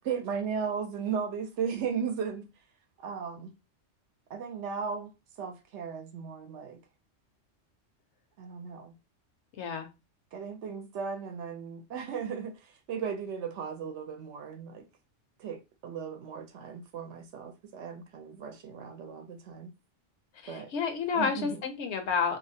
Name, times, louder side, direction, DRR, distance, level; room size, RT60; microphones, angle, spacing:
voice 1, 0.0-2.5 3.0-3.5 4.3-5.1 5.4-6.8 8.4-8.9 10.3-14.8 15.4-19.7 20.5-20.7 21.1-21.6, right 6 dB, 70° right, 0.8 m, -36 dB
voice 2, 9.6-9.9 20.4-22.4, left 6 dB, 70° left, 0.8 m, -30 dB
2.6 x 2.0 x 2.6 m
omnidirectional pair, 1.3 m